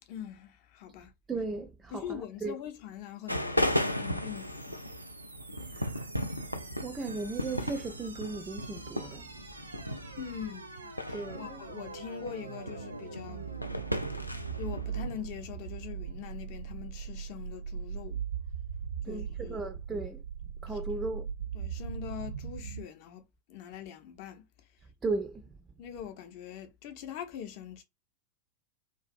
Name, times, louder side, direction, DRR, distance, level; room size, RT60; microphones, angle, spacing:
voice 1, 0.1-1.1 1.9-4.9 10.2-13.5 14.6-18.2 19.1-19.7 20.7-21.0 21.5-23.2 23.5-24.5 25.8-27.8, left 9 dB, 45° left, 0.6 m, -43 dB
voice 2, 1.3-2.6 5.7-6.1 6.8-9.3 11.1-11.6 19.0-20.2 20.6-21.3 25.0-25.5, right 3 dB, 15° right, 0.3 m, -36 dB
sound 1, 3.3-15.2, left 1 dB, 90° left, 0.3 m, -36 dB
sound 2, 3.9-22.8, right 7 dB, 75° right, 0.5 m, -41 dB
2.5 x 2.3 x 2.5 m
figure-of-eight pair, 90°, 0 cm